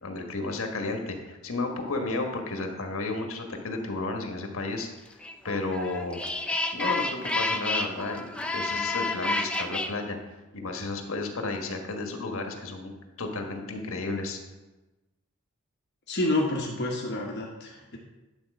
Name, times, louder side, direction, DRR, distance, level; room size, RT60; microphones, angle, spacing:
voice 1, 0.0-4.9 5.4-6.2 6.7-10.2 10.5-12.9 13.2-14.4, left 3 dB, 70° left, 4 dB, 1.3 m, -32 dB
sound 1, 5.2-9.9, left 2 dB, 5° left, 0.4 m, -29 dB
voice 2, 16.1-18.0, left 2 dB, 50° left, -2 dB, 0.9 m, -28 dB
10.5 x 4.1 x 6.3 m, 1.1 s
head